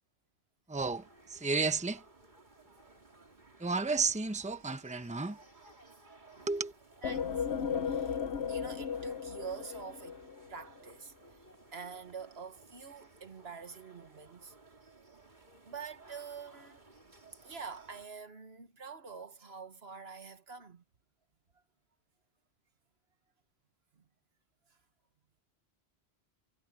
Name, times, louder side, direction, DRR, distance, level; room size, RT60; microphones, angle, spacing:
voice 1, 0.7-2.0 3.6-5.4 6.5-6.7, right 4 dB, 5° right, 1.0 m, -32 dB
sound 1, 0.8-18.1, right 2 dB, 45° right, 3.0 m, -59 dB
sound 2, 7.0-10.6, left 7 dB, 80° left, 1.2 m, -35 dB
voice 2, 7.0-7.5 7.8-8.2 8.5-10.2 10.5-11.5 11.7-14.5 15.6-16.8 17.4-20.8, right 5 dB, 70° right, 1.8 m, -46 dB
omnidirectional pair, 1.1 m